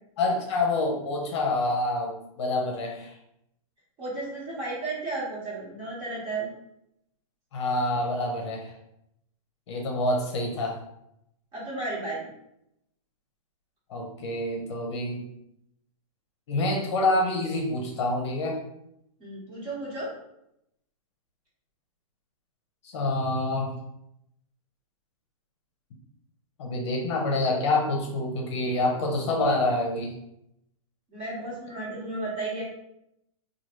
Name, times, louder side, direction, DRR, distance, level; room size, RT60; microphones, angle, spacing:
voice 1, 0.2-3.1 7.5-8.7 9.7-10.8 13.9-15.2 16.5-18.6 22.8-23.7 26.6-30.1, left 2 dB, 50° left, 0 dB, 0.7 m, -27 dB
voice 2, 4.0-6.5 11.5-12.3 19.2-20.1 31.1-32.6, right 2 dB, 25° right, -6 dB, 1.4 m, -33 dB
3.1 x 2.3 x 3.0 m, 0.81 s
hypercardioid pair, 150°, 19 cm